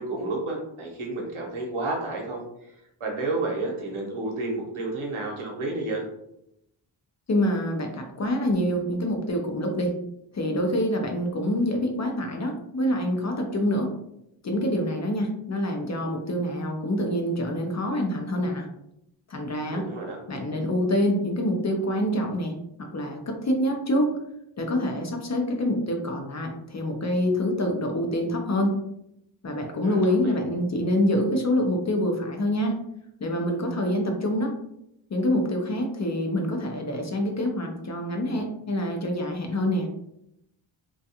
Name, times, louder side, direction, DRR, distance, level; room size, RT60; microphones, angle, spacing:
voice 1, 0.0-2.4 3.0-6.1 19.7-20.2 29.8-30.4, right 2 dB, 85° right, -1 dB, 0.9 m, -31 dB
voice 2, 7.3-10.0 10.3-13.9 14.4-18.7 19.3-19.8 20.3-22.5 22.9-24.1 24.6-28.7 29.4-32.8 33.2-34.5 35.1-39.9, left 1 dB, 35° left, 2 dB, 0.4 m, -26 dB
2.3 x 2.3 x 2.7 m, 0.80 s
wide cardioid pair, 90°, 48 cm